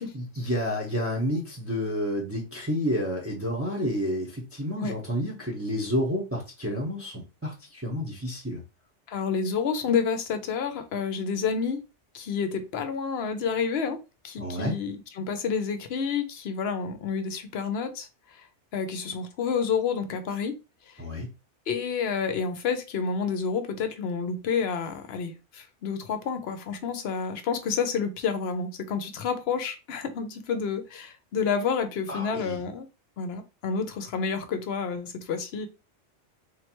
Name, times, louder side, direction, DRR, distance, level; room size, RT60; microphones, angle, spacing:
voice 1, 0.1-8.6 14.4-14.8 21.0-21.3 32.1-32.6, equal, 15° right, 0.8 m, -30 dB
voice 2, 9.1-11.8 12.1-14.0 14.2-18.5 18.7-20.6 20.9-21.0 21.7-32.9 33.2-35.7, left 6 dB, 60° left, 0.8 m, -29 dB
3.8 x 3.2 x 3.0 m
omnidirectional pair, 1.2 m